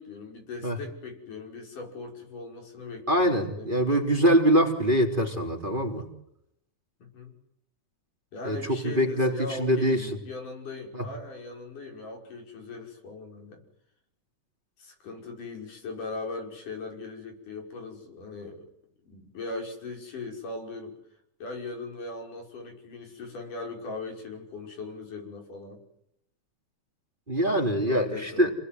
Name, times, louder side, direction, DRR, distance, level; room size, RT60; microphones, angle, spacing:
voice 1, 0.0-3.8 7.0-7.3 8.3-13.6 14.8-18.7 19.0-21.0 21.4-25.8 27.9-28.5, left 3 dB, 85° left, 2 dB, 7.4 m, -39 dB
voice 2, 3.1-6.1 8.4-10.1 10.9-11.1 27.3-28.5, equal, 15° right, 3 dB, 3.5 m, -24 dB
29.0 x 20.5 x 9.6 m, 0.76 s
omnidirectional pair, 3.6 m